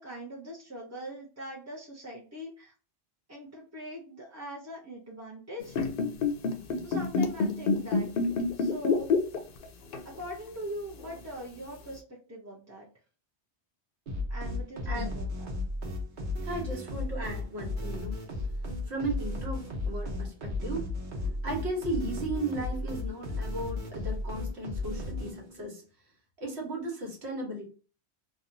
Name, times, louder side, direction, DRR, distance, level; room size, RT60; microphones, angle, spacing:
voice 1, 0.0-2.7 3.3-5.8 6.8-8.2 8.5-9.1 10.0-12.9 14.3-15.5, equal, 20° right, -4 dB, 0.5 m, -41 dB
sound 1, 5.6-9.6 9.9-10.2 11.0-11.1, left 4 dB, 60° left, 0.7 m, -27 dB
sound 2, 14.1-25.7, left 2 dB, 50° right, 1.0 m, -34 dB
voice 2, 16.4-18.2 18.8-25.8 26.4-27.6, right 2 dB, 70° right, -1 dB, 1.3 m, -36 dB
2.9 x 2.3 x 2.6 m, 0.37 s
omnidirectional pair, 1.2 m